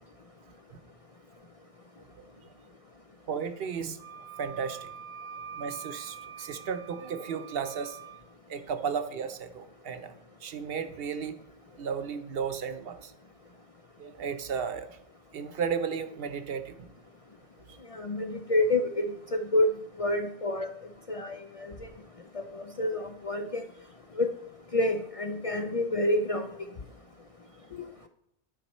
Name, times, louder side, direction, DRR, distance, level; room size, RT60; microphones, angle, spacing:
voice 1, 2.2-2.5 3.3-4.0 4.4-4.9 5.6-8.0 8.5-10.1 10.4-11.4 11.8-13.1 14.0-14.9 15.3-16.9, right 6 dB, 65° right, 10 dB, 0.9 m, -34 dB
Wind instrument woodwind instrument, 4.0-8.2, right 8 dB, 85° right, 1.1 m, -45 dB
voice 2, 17.9-19.7 20.0-20.7 21.1-21.7 22.3-23.6 24.2-24.3 24.7-26.5, left 1 dB, 50° left, 5 dB, 0.4 m, -28 dB
10.0 x 5.6 x 4.2 m, 0.76 s
omnidirectional pair, 1.1 m